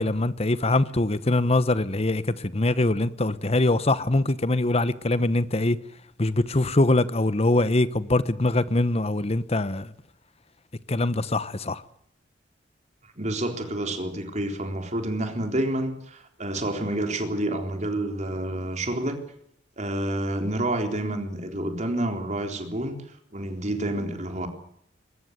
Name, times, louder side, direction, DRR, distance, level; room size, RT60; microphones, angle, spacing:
voice 1, 0.0-5.8 6.2-9.9 10.9-11.8, left 2 dB, 35° left, 1.0 m, -23 dB
voice 2, 13.2-19.2 19.8-23.0 23.3-24.5, right 1 dB, 40° right, 3.8 m, -29 dB
22.5 x 20.0 x 8.2 m
head